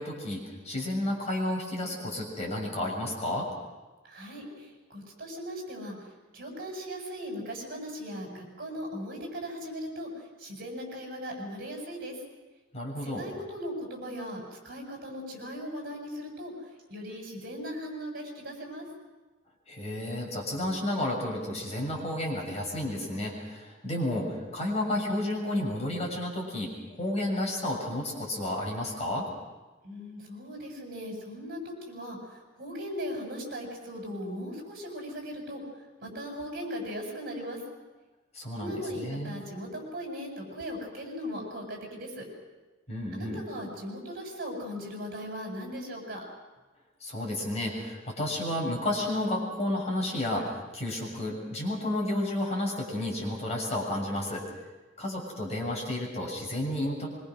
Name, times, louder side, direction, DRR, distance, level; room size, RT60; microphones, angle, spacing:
voice 1, 0.0-3.5 12.7-13.2 19.7-29.3 38.3-39.4 42.9-43.4 47.0-54.4 55.0-57.1, left 1 dB, 35° left, -1 dB, 7.0 m, -31 dB
voice 2, 4.0-5.9 6.3-12.2 13.0-16.5 16.9-18.9 29.8-35.6 36.0-37.6 38.6-42.2 43.1-46.2, equal, 50° right, 1 dB, 7.6 m, -38 dB
25.0 x 24.5 x 6.4 m, 1.2 s
head